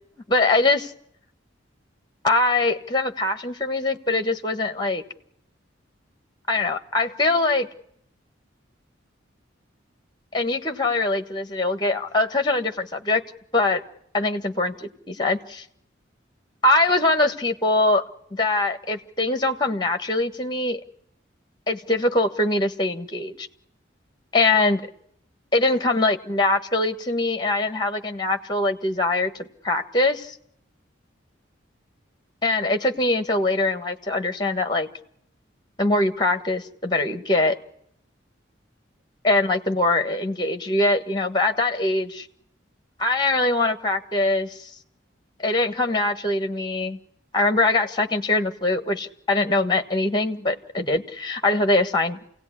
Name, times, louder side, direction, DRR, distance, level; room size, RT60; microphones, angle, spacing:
voice 1, 0.3-0.9 2.2-5.0 6.5-7.7 10.3-13.2 13.5-13.8 14.1-15.6 16.6-18.0 18.3-20.8 21.7-23.5 24.3-24.9 25.5-30.4 32.4-34.9 35.8-37.6 39.2-42.3 43.0-44.7 45.4-47.0 47.3-52.2, left 2 dB, 20° left, 9 dB, 1.4 m, -22 dB
28.0 x 17.5 x 9.8 m, 0.74 s
head